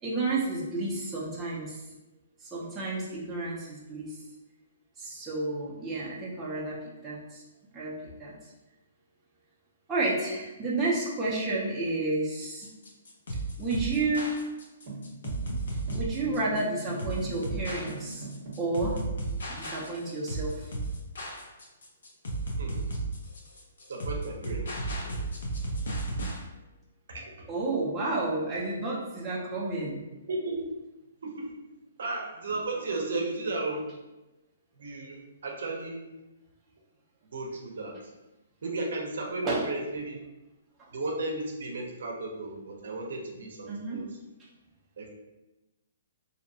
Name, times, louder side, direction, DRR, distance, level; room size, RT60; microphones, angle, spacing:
voice 1, 0.0-1.8 2.4-4.2 5.0-6.8 7.0-7.4 7.7-7.9 8.2-8.3 9.9-12.7 13.6-14.3 15.9-18.2 18.6-19.0 19.5-20.7 27.5-30.0 39.4-39.6 43.7-44.0, right 2 dB, 10° right, -8 dB, 0.5 m, -31 dB
sound 1, 12.4-26.4, right 2 dB, 75° left, 0.7 m, -34 dB
sound 2, 14.9-19.0, right 3 dB, 35° right, 0.8 m, -42 dB
voice 2, 23.9-25.2 27.1-27.3 28.5-28.6 30.3-30.6 31.2-31.5 32.0-33.8 34.8-36.0 37.3-37.9 38.6-40.2 40.9-44.1 45.0-45.1, right 2 dB, 70° right, 0 dB, 0.5 m, -34 dB
2.6 x 2.1 x 2.6 m, 1.0 s
hypercardioid pair, 165°, 0 cm